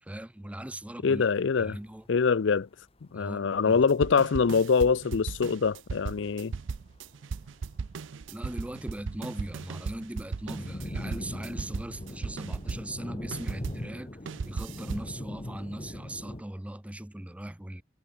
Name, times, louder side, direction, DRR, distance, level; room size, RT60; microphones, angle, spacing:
voice 1, 0.0-1.3 1.6-2.1 3.1-3.8 8.3-17.8, right 1 dB, 5° right, 0.5 m, -40 dB
voice 2, 1.0-1.8 2.1-2.7 3.1-6.5, left 5 dB, 70° left, 0.5 m, -24 dB
sound 1, 1.1-1.2 1.4-1.5 1.8-2.2 2.5-2.6 2.7-3.1 3.7-3.8 4.3-4.4 4.7-4.9 5.5-5.9 6.3-6.8 7.1-8.1 8.3-16.4, left 1 dB, 30° left, 1.4 m, -41 dB
sound 2, 3.7-13.9 14.3-15.1, right 4 dB, 80° right, 0.5 m, -37 dB
head